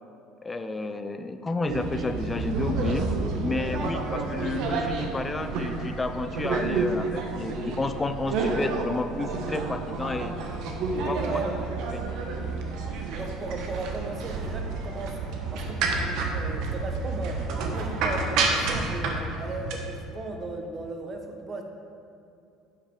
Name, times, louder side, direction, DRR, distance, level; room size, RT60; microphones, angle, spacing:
voice 1, 0.4-3.1 3.4-10.5 10.9-11.4 11.9-12.0, left 3 dB, 20° left, 9 dB, 0.5 m, -31 dB
sound 1, 1.7-19.8, right 3 dB, 65° right, 1.1 m, -29 dB
voice 2, 11.1-11.7 13.1-15.2 15.5-17.4 17.7-21.6, right 2 dB, 35° right, 3 dB, 1.0 m, -36 dB
8.2 x 6.0 x 4.9 m, 2.7 s
supercardioid pair, 105°, 0 cm